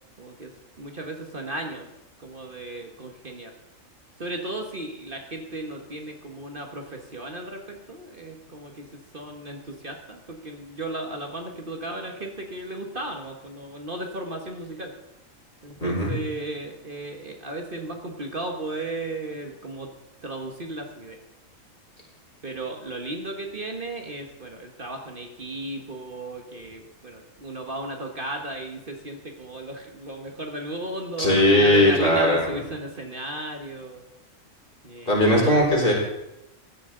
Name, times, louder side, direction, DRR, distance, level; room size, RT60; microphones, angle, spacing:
voice 1, 0.2-0.5 0.8-1.9 2.2-3.5 4.2-8.8 9.1-14.9 15.6-19.9 20.2-21.2 22.4-34.0 34.8-35.9, right 1 dB, 40° right, 2 dB, 1.5 m, -35 dB
voice 2, 15.8-16.1 31.2-32.5 35.1-35.9, left 1 dB, 40° left, -3 dB, 4.6 m, -19 dB
16.5 x 12.5 x 3.8 m, 0.89 s
omnidirectional pair, 1.4 m